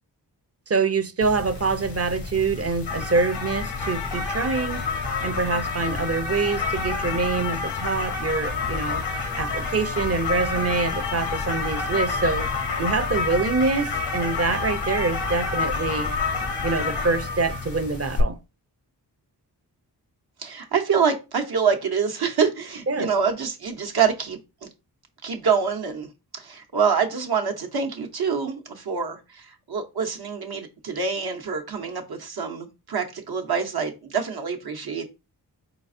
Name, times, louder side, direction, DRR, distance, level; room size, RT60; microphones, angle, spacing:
voice 1, 0.7-4.8 5.2-9.0 9.4-12.5 12.8-16.1 16.6-18.4 22.9-23.1, right 4 dB, 35° right, 0.7 m, -25 dB
sound 1, 1.2-18.2, left 4 dB, 85° left, 1.0 m, -28 dB
voice 2, 20.4-24.4 25.2-26.1 26.3-35.1, right 6 dB, 65° right, 1.0 m, -26 dB
4.1 x 3.9 x 2.6 m
cardioid pair, 55°, 40 cm